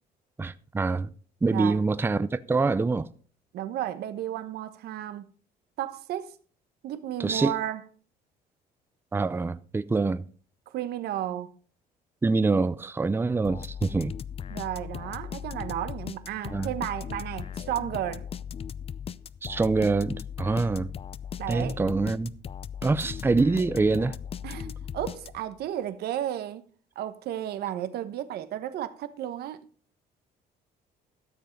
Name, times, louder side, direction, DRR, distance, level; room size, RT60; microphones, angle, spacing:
voice 1, 0.4-1.1 1.4-3.1 7.2-7.5 9.1-10.2 12.2-14.1 16.5-16.7 19.4-20.9 21.5-22.3 22.8-24.2, right 3 dB, 15° right, 0.5 m, -25 dB
voice 2, 1.5-1.8 3.5-5.2 5.8-6.4 6.8-7.8 10.7-11.5 14.5-18.3 21.4-21.8 24.4-26.6 26.9-29.6, right 12 dB, 70° right, 1.1 m, -33 dB
sound 1, 13.4-25.6, left 8 dB, 35° left, 0.5 m, -38 dB
13.0 x 7.3 x 5.3 m
cardioid pair, 110°, 17 cm